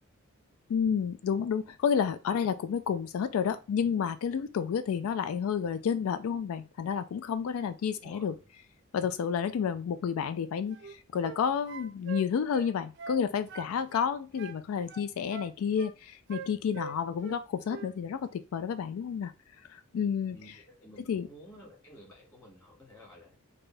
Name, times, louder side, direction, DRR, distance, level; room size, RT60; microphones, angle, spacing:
voice 1, 0.7-8.3 8.9-19.3 19.7-20.6 21.1-21.3, left 7 dB, 80° left, 0.3 m, -30 dB
voice 2, 7.9-8.4 20.3-23.4, equal, 15° left, 1.9 m, -52 dB
sound 1, 10.7-11.4 11.7-13.2 13.5-14.6 14.9-15.9 16.3-17.4 17.7-17.9, right 5 dB, 55° right, 0.5 m, -43 dB
4.2 x 2.7 x 3.2 m
head